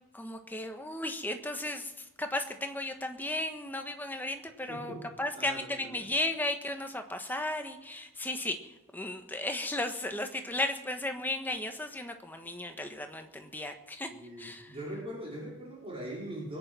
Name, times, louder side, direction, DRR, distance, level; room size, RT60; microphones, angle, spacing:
voice 1, 0.1-14.1 14.4-14.7, left 1 dB, 10° left, 6 dB, 1.3 m, -35 dB
voice 2, 4.7-5.1 5.3-5.9 14.1-16.6, right 1 dB, 25° right, -4 dB, 4.8 m, -41 dB
21.5 x 9.4 x 6.2 m, 1.0 s
head